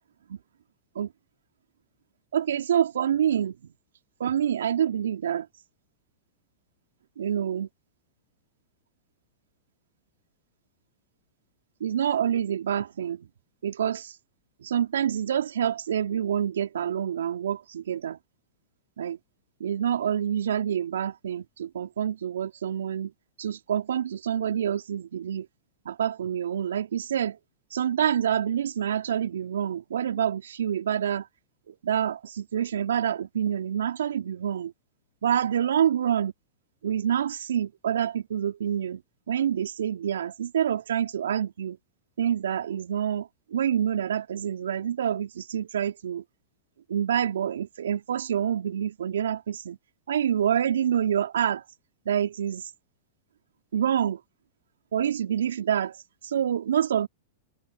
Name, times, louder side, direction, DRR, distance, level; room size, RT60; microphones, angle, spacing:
voice 1, 2.3-3.6 4.2-5.5 7.2-7.7 11.8-13.3 13.6-14.1 14.6-18.2 19.0-19.2 19.6-23.1 23.4-25.5 25.9-27.4 27.7-31.3 31.8-34.7 35.2-36.3 36.8-39.0 39.3-41.8 42.2-46.2 46.9-49.8 50.1-51.6 52.1-52.7 53.7-54.2 54.9-56.0 56.2-57.1, right 9 dB, 75° right, 3.5 m, -27 dB
hypercardioid pair, 105°, 0 cm